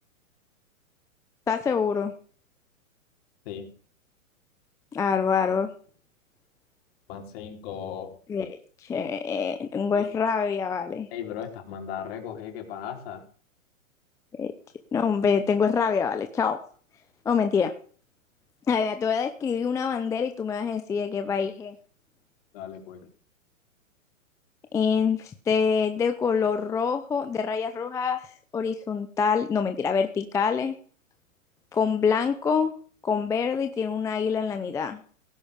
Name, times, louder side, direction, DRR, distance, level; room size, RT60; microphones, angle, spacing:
voice 1, 1.5-2.1 4.9-5.7 8.3-8.6 8.9-11.1 14.3-14.5 14.9-16.6 17.3-17.7 18.7-21.8 24.7-28.3 28.5-30.7 31.7-32.7 33.0-35.0, left 6 dB, 10° left, 8 dB, 0.6 m, -25 dB
voice 2, 7.1-8.2 9.9-10.0 11.1-13.3 22.5-23.1, left 8 dB, 45° left, 4 dB, 4.3 m, -37 dB
17.0 x 10.0 x 5.0 m, 0.43 s
hypercardioid pair, 135°, 41 cm